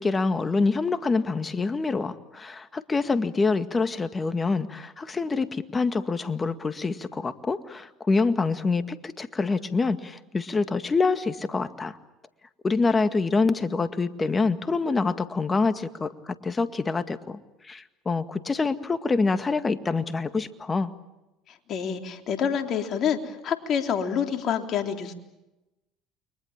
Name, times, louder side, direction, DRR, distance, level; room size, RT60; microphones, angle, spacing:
voice 1, 0.0-12.0 12.6-20.9, left 4 dB, 25° left, 10 dB, 2.0 m, -26 dB
voice 2, 21.7-25.1, left 7 dB, 50° left, 4 dB, 3.5 m, -27 dB
29.5 x 23.5 x 7.4 m, 1.0 s
hypercardioid pair, 75°, 0 cm